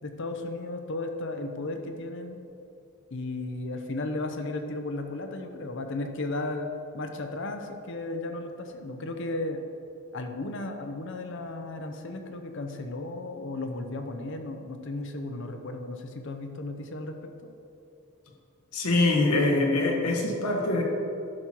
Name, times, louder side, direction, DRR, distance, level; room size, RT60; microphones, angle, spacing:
voice 1, 0.0-2.4 3.1-9.7 10.1-17.3, left 2 dB, 55° left, 6 dB, 0.7 m, -35 dB
voice 2, 18.7-20.8, left 2 dB, 85° left, 0 dB, 1.5 m, -24 dB
10.5 x 6.1 x 4.5 m, 2.7 s
head